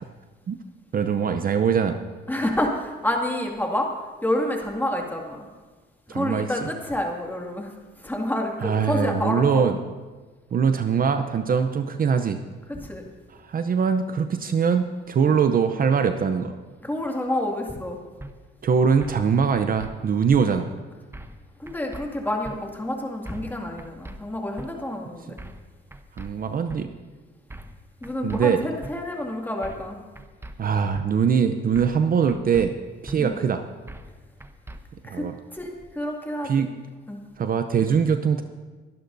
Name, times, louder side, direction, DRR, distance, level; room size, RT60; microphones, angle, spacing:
voice 1, 0.9-2.0 6.1-6.7 8.6-9.8 10.5-12.4 13.4-16.5 18.6-20.7 26.2-26.9 28.2-28.6 30.6-32.7 33.0-33.6 35.0-35.3 36.4-36.7 37.4-38.4, right 6 dB, 45° right, 8 dB, 0.7 m, -22 dB
voice 2, 2.3-3.9 4.2-5.5 6.1-9.6 12.7-13.0 15.3-15.4 16.8-18.0 21.6-25.4 28.0-30.0 33.2-33.4 35.0-36.7 37.1-37.2, left 1 dB, 10° left, 1 dB, 2.2 m, -28 dB
sound 1, 18.2-18.3 19.0-19.3 19.5-19.9 20.3-20.4 21.1-21.4 21.7-22.0 22.4-22.6 23.2-23.5 23.8-24.2 24.6-24.7 25.4-25.6 25.9-26.3 26.7-26.8 27.5-27.8 28.0-28.4 28.8-28.9 29.6-29.9 30.2-30.5 30.9-31.1 31.7-32.0 32.3-32.7 33.1-33.2 33.9-34.1 34.4-34.8, right 1 dB, 10° right, 0.8 m, -40 dB
22.5 x 11.5 x 2.7 m, 1.3 s
cardioid pair, 90°, 20 cm